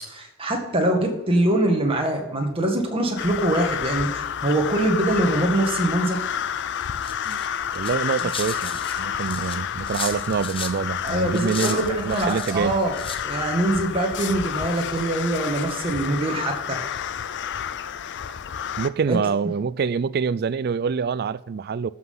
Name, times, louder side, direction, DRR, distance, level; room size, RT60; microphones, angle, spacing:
voice 1, 0.1-6.2 11.0-13.0 13.2-16.8 19.1-19.2, right 1 dB, 25° right, 1.9 m, -23 dB
sound 1, 3.2-18.9, left 8 dB, 55° left, 0.5 m, -30 dB
sound 2, 7.0-10.8 11.1-12.6 12.9-13.2, left 5 dB, 25° left, 0.9 m, -35 dB
voice 2, 7.7-12.8 18.8-21.9, right 6 dB, 45° right, 0.3 m, -26 dB
13.5 x 5.7 x 5.7 m
head